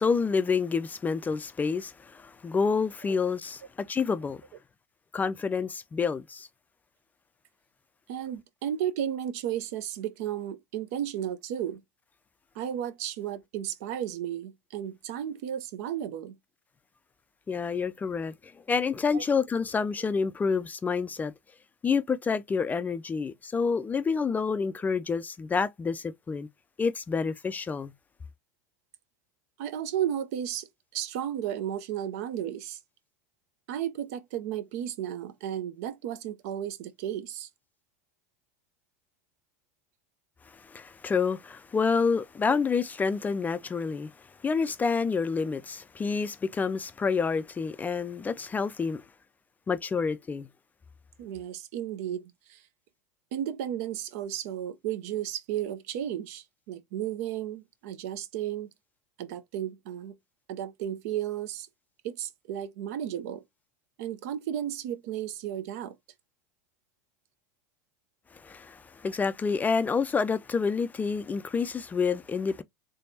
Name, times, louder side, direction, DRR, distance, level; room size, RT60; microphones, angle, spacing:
voice 1, 0.0-4.4 5.1-6.5 17.5-18.3 18.7-21.3 21.8-26.5 26.8-27.9 40.7-44.1 44.4-49.0 49.7-50.5 68.4-72.6, left 5 dB, 20° left, 0.3 m, -28 dB
voice 2, 8.1-11.8 12.5-16.4 19.1-19.2 29.6-30.7 30.9-32.8 33.7-37.5 42.4-42.6 51.2-52.6 53.3-58.7 59.2-60.2 60.5-61.7 62.0-63.4 64.0-65.9, right 10 dB, 65° right, 0.6 m, -33 dB
3.4 x 3.3 x 2.7 m
hypercardioid pair, 90°, 9 cm